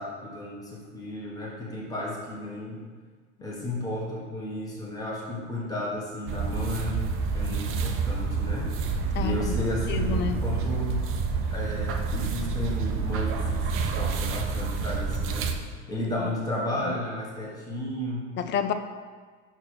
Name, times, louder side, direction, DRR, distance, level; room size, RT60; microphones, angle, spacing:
voice 1, 0.0-2.8 3.4-7.0 7.3-8.7 9.2-11.1 11.5-15.6 15.9-18.3, left 1 dB, 10° left, -4 dB, 1.3 m, -33 dB
sound 1, 6.3-15.5, right 4 dB, 40° right, 0.6 m, -28 dB
voice 2, 9.1-9.5 9.9-10.4 16.2-16.3 16.8-16.9 18.4-18.7, left 7 dB, 35° left, 9 dB, 0.4 m, -29 dB
5.7 x 4.5 x 6.3 m, 1.5 s
cardioid pair, 140°, 33 cm